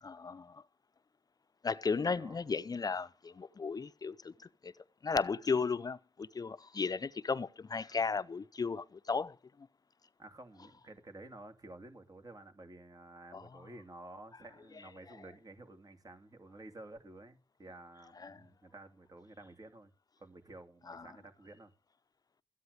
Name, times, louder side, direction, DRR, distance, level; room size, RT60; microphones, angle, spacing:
voice 1, 0.0-0.6 1.6-4.7 5.0-9.4 13.3-13.4 18.2-18.4 20.9-21.0, left 5 dB, 40° left, 0.7 m, -35 dB
voice 2, 10.2-19.9 20.2-21.7, right 2 dB, 40° right, 2.9 m, -52 dB
14.0 x 9.5 x 5.1 m
cardioid pair, 65°, 10 cm